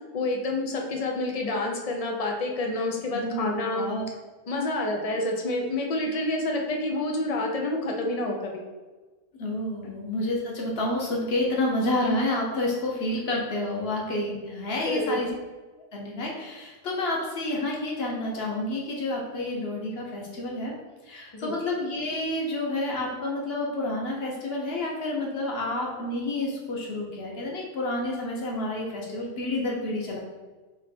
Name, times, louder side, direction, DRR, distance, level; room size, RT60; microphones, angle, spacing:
voice 1, 0.1-3.8 4.5-8.5 14.8-15.2 21.3-21.5, left 2 dB, 70° left, 1 dB, 0.3 m, -28 dB
voice 2, 3.2-4.0 9.4-15.3 15.9-20.7 21.0-30.2, left 1 dB, 55° left, -2 dB, 1.0 m, -29 dB
3.1 x 3.0 x 4.3 m, 1.3 s
omnidirectional pair, 1.3 m